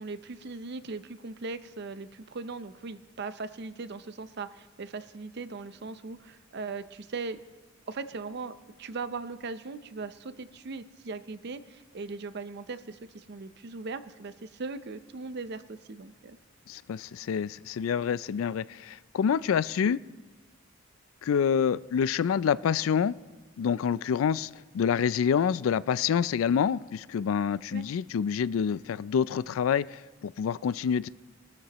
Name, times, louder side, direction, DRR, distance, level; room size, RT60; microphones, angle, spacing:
voice 1, 0.0-7.4 7.9-16.4 27.7-27.9, right 4 dB, 55° right, 13 dB, 0.6 m, -39 dB
voice 2, 16.7-20.0 21.2-23.1 23.6-24.5 24.7-31.1, left 7 dB, 90° left, 19 dB, 0.3 m, -27 dB
21.5 x 13.0 x 3.0 m, 1.3 s
head